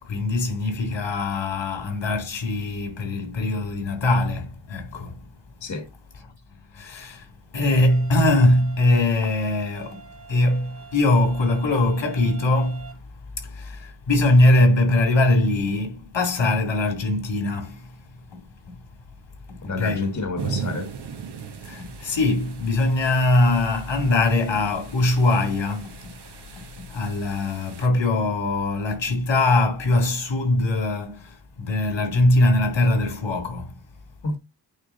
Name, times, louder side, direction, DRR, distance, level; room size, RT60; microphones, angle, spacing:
voice 1, 0.0-5.2 6.7-13.0 13.4-18.0 18.3-18.4 18.7-18.8 19.5-20.1 21.6-26.2 26.5-33.8, left 2 dB, 90° left, 2.5 m, -22 dB
sound 1, 7.9-12.9, right 6 dB, 30° right, 1.5 m, -46 dB
voice 2, 19.6-20.9 34.2-34.4, left 3 dB, 40° left, 1.3 m, -29 dB
sound 2, 20.4-27.9, right 6 dB, 65° right, 1.1 m, -37 dB
8.9 x 3.4 x 3.9 m
wide cardioid pair, 140°, 43 cm